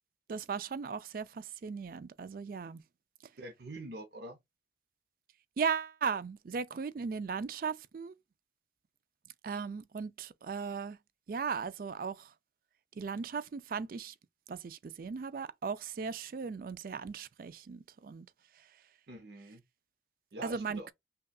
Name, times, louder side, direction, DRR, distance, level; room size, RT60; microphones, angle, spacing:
voice 1, 0.3-2.8 5.6-8.1 9.4-11.0 11.3-12.3 13.0-14.1 14.5-18.3 20.4-20.9, right 5 dB, 50° right, 0.3 m, -37 dB
voice 2, 3.4-4.4 19.1-19.6 20.3-20.9, right 1 dB, 70° right, 0.9 m, -45 dB
5.5 x 2.3 x 2.3 m
head